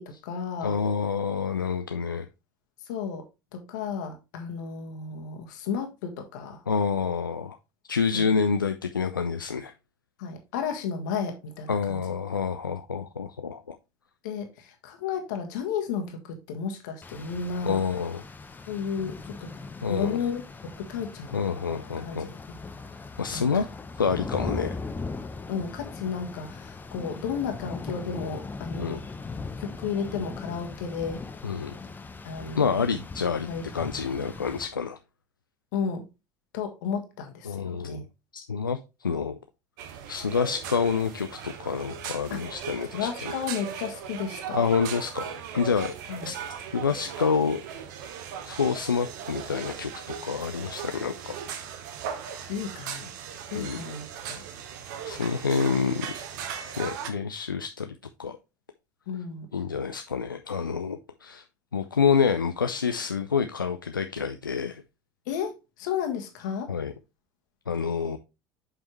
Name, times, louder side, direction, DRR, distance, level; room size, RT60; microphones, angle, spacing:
voice 1, 0.0-0.7 2.8-3.2 3.5-6.6 8.1-8.3 10.2-12.0 14.2-17.9 18.7-19.5 19.9-20.4 20.8-21.4 22.0-22.3 23.3-23.5 25.5-29.0 29.6-31.2 32.2-32.7 33.5-33.6 35.7-36.1 36.5-38.0 42.3-42.4 42.9-44.6 46.1-46.3 52.5-53.1 53.5-54.0 54.3-54.4 59.1-59.5 65.3-65.5 65.8-66.7, left 6 dB, 65° left, 4 dB, 1.7 m, -33 dB
voice 2, 0.6-2.3 6.7-7.6 7.9-9.7 11.7-13.8 17.6-18.2 19.8-20.2 21.3-22.3 23.2-23.7 24.0-24.8 28.8-29.0 31.4-31.8 32.6-33.5 33.7-35.0 37.5-38.0 38.3-39.4 40.1-43.4 44.5-45.9 46.2-46.4 46.7-47.6 48.5-51.4 53.5-53.8 55.0-56.1 56.8-58.4 59.5-61.4 61.7-64.8 66.7-66.9 67.7-68.2, left 5 dB, 85° left, 8 dB, 0.4 m, -28 dB
Rain, 17.0-34.7, left 4 dB, 15° left, 0.8 m, -39 dB
sound 1, 39.8-57.1, right 8 dB, 65° right, 1.0 m, -38 dB
7.2 x 5.4 x 3.1 m, 0.27 s
figure-of-eight pair, 70°, 11 cm